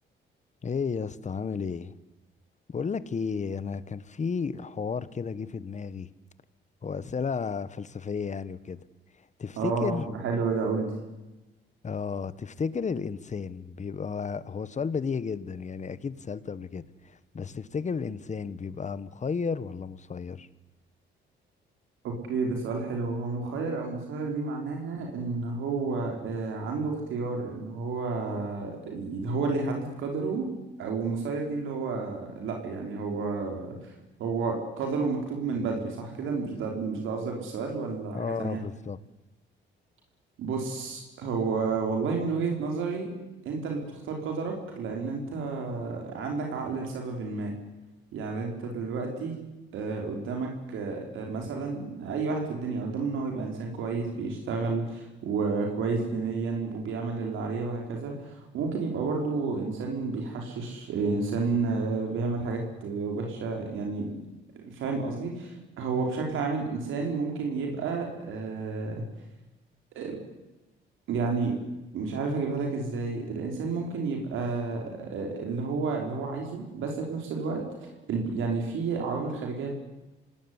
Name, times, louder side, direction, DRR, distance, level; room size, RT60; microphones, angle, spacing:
voice 1, 0.6-1.9 2.7-6.1 6.8-8.8 9.4-10.1 11.8-20.5 38.1-39.0, left 5 dB, 35° left, 15 dB, 1.5 m, -33 dB
voice 2, 9.6-10.9 22.0-30.5 30.8-33.9 34.2-38.6 40.4-43.1 43.5-47.5 48.1-49.3 49.7-64.2 64.6-69.0 69.9-70.2 71.1-71.5 71.9-79.7, right 4 dB, 80° right, 1 dB, 5.3 m, -31 dB
26.5 x 18.5 x 9.9 m, 1.1 s
cardioid pair, 90°, 20 cm